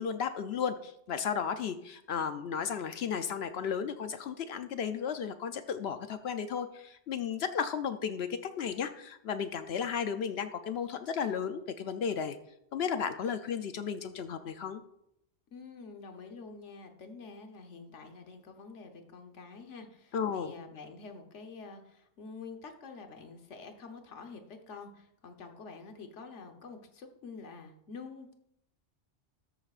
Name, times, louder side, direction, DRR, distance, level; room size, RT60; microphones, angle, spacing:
voice 1, 0.0-12.4 12.7-14.8 20.1-20.5, left 7 dB, 65° left, 10 dB, 0.8 m, -34 dB
voice 2, 15.5-28.3, left 4 dB, 90° left, 5 dB, 1.4 m, -47 dB
13.0 x 8.3 x 2.4 m, 0.75 s
omnidirectional pair, 1.2 m